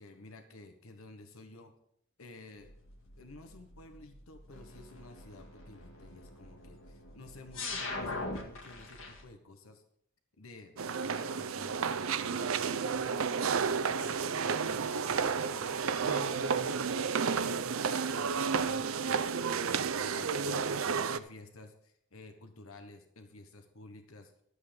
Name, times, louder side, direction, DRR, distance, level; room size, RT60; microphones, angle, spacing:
voice 1, 0.0-1.7 2.2-2.7 3.2-9.8 10.4-11.9 12.2-13.3 13.5-24.3, left 2 dB, 85° left, 6 dB, 1.2 m, -52 dB
sound 1, 2.6-9.2, left 2 dB, 65° left, 2.1 m, -43 dB
sound 2, 10.8-21.2, right 6 dB, 75° right, 0.6 m, -31 dB
12.0 x 8.3 x 5.2 m, 0.70 s
head